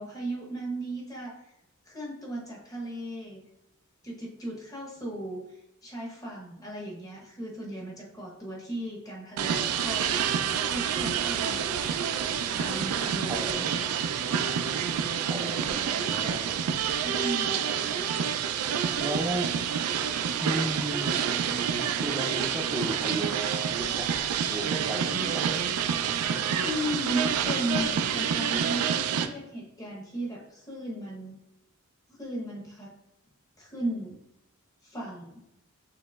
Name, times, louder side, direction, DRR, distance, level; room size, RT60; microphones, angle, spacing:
voice 1, 0.0-1.4 1.9-3.5 4.0-5.4 5.8-11.9 12.6-13.7 17.0-17.9 26.6-28.9 29.2-31.4 32.2-32.9 33.6-34.2 34.8-35.4, right 1 dB, 15° left, -2 dB, 0.8 m, -36 dB
sound 1, 9.4-29.3, right 8 dB, 80° right, 0.3 m, -28 dB
voice 2, 13.3-13.8 15.3-16.6 19.0-19.5 20.4-23.3 23.8-24.1 24.5-25.6, right 1 dB, 15° right, 2 dB, 0.5 m, -35 dB
6.5 x 2.9 x 2.3 m, 0.83 s
head